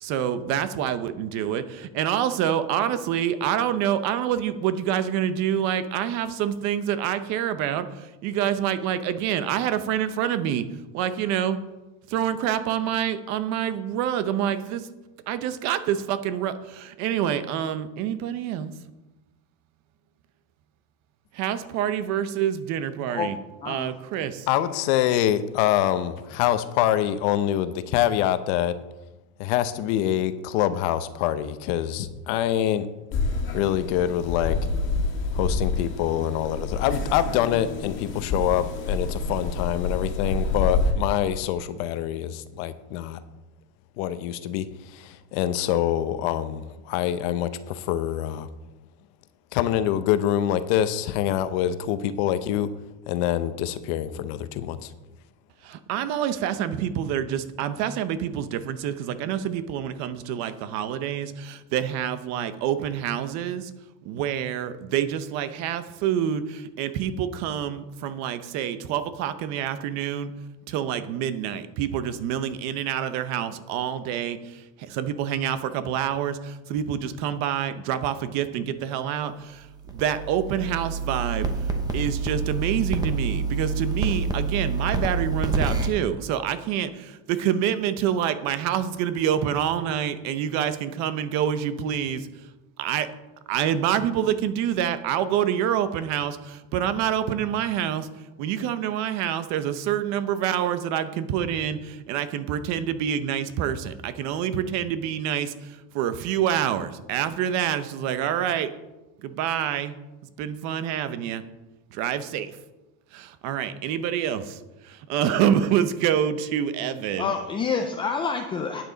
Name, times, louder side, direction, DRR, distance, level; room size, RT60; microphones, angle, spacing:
voice 1, 0.0-1.6 2.0-10.6 10.9-11.6 12.1-14.9 15.3-18.7 21.3-23.4 23.7-24.5 55.6-63.7 64.0-70.3 70.7-81.5 81.9-92.3 92.8-93.1 93.5-98.1 98.4-108.7 109.2-110.0 110.4-111.4 111.9-112.6 113.4-114.4 114.9-117.3, right 9 dB, 45° right, 0.8 m, -27 dB
voice 2, 24.5-28.8 29.4-32.9 33.5-34.6 35.3-43.2 44.0-48.5 49.5-52.7 53.1-54.9, left 11 dB, 55° left, 0.8 m, -25 dB
sound 1, 33.1-40.9, left 3 dB, 35° left, 2.0 m, -28 dB
sound 2, 79.7-85.9, right 4 dB, 10° right, 0.9 m, -27 dB
voice 3, 117.2-118.8, left 5 dB, 15° left, 0.4 m, -27 dB
12.0 x 9.1 x 4.0 m
cardioid pair, 160°, 37 cm